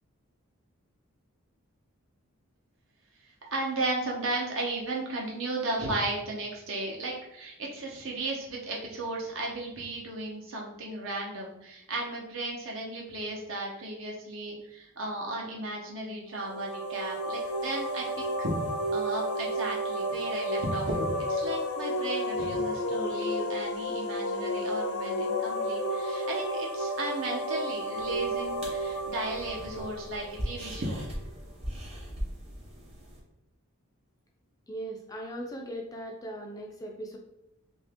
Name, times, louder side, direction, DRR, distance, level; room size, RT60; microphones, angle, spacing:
voice 1, 3.5-18.5 18.9-31.0, right 2 dB, 65° right, -2 dB, 0.9 m, -35 dB
sound 1, 16.3-31.0, equal, 85° left, 0.5 m, -32 dB
sound 2, 28.0-33.2, equal, 30° right, 0.8 m, -40 dB
voice 2, 34.7-37.2, right 1 dB, 15° left, 1 dB, 0.3 m, -39 dB
2.8 x 2.6 x 3.4 m, 0.83 s
head